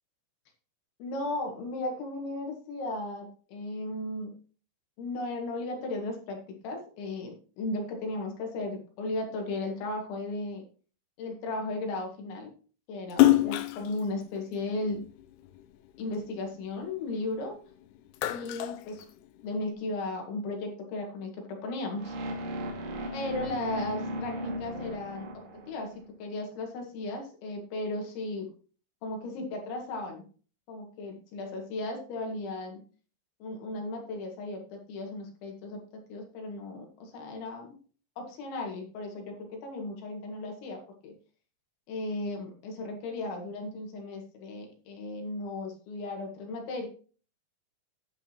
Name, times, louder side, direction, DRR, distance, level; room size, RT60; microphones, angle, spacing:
voice 1, 1.0-4.3 5.0-10.7 11.2-12.5 12.9-15.0 16.0-17.6 18.3-19.1 19.4-22.2 23.1-25.9 26.2-28.5 29.0-30.2 30.7-32.8 33.4-37.8 38.2-41.2 41.9-46.9, left 2 dB, 70° left, 2 dB, 4.2 m, -36 dB
Splash splatter, 13.1-15.7 16.1-17.6 17.9-19.6, left 15 dB, 85° left, 2.4 m, -27 dB
sound 1, 22.0-26.1, equal, 70° right, 4.4 m, -36 dB
11.5 x 9.0 x 3.0 m, 0.39 s
omnidirectional pair, 5.6 m